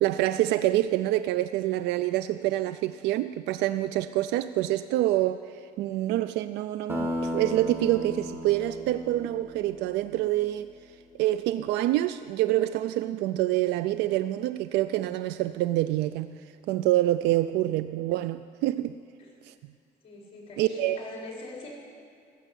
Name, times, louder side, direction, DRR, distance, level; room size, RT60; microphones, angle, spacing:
voice 1, 0.0-5.4 5.8-10.7 11.2-16.4 16.7-18.9 19.5-19.6 20.6-21.0, right 15 dB, 85° right, 13 dB, 0.4 m, -26 dB
sound 1, 6.9-11.2, equal, 15° right, 1.7 m, -36 dB
voice 2, 20.0-21.7, left 3 dB, 35° left, -2 dB, 4.6 m, -42 dB
15.0 x 7.1 x 9.2 m, 2.3 s
cardioid pair, 110°, 17 cm